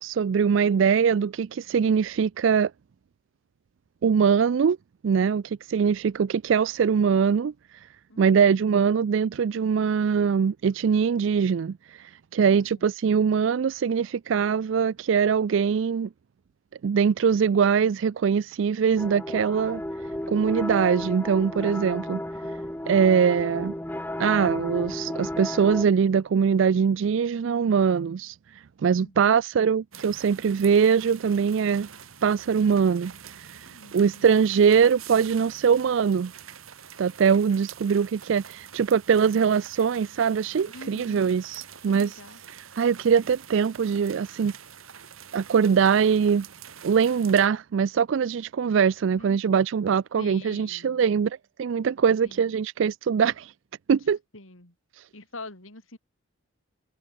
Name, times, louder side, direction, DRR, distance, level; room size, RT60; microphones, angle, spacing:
voice 1, 0.0-2.7 4.0-4.8 5.0-7.5 8.2-16.1 16.8-19.8 20.3-22.2 22.9-23.7 24.2-31.9 32.2-36.3 37.0-42.2 42.8-44.5 45.3-46.5 46.8-53.5 53.9-54.2, right 6 dB, 65° right, 0.4 m, -22 dB
voice 2, 8.1-8.6 12.5-12.8 29.0-29.4 33.6-34.4 40.1-40.2 40.6-41.3 41.9-42.4 44.3-44.6 49.1-49.4 50.2-51.0 52.2-52.6 54.3-54.7 55.1-56.0, left 2 dB, 75° left, 4.7 m, -45 dB
sound 1, 19.0-25.8, left 1 dB, 10° left, 0.9 m, -33 dB
sound 2, 29.9-47.5, right 8 dB, 85° right, 2.0 m, -46 dB
head